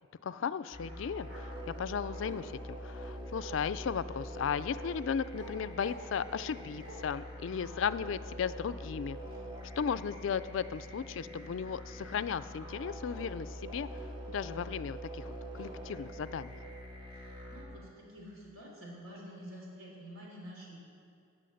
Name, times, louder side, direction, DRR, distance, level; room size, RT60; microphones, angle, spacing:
voice 1, 0.2-9.2 9.8-13.9 14.3-16.5, left 7 dB, 65° left, 15 dB, 0.3 m, -36 dB
sound 1, 0.7-17.6, equal, 25° right, 1.7 m, -44 dB
Bark, 1.3-1.5 2.1-2.7 3.3-3.5 4.1-4.2 4.7-4.9 5.3-5.5 5.8-6.5 6.8-7.0, right 1 dB, 55° right, 3.5 m, -49 dB
voice 2, 17.1-20.8, equal, 85° right, -3 dB, 3.5 m, -48 dB
17.0 x 6.2 x 6.5 m, 2.5 s
head